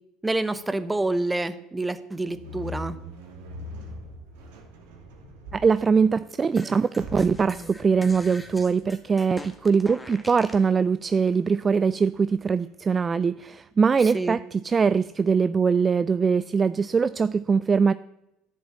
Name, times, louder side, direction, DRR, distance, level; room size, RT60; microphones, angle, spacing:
voice 1, 0.2-2.9 14.1-14.4, right 2 dB, 15° right, 14 dB, 1.0 m, -27 dB
sound 1, 2.2-13.4, left 1 dB, 80° right, 2.7 m, -43 dB
voice 2, 5.5-17.9, right 5 dB, 30° right, 16 dB, 0.4 m, -22 dB
sound 2, 6.5-10.7, equal, 5° left, 1.7 m, -42 dB
10.5 x 7.3 x 8.8 m, 0.86 s
hypercardioid pair, 75°, 0 cm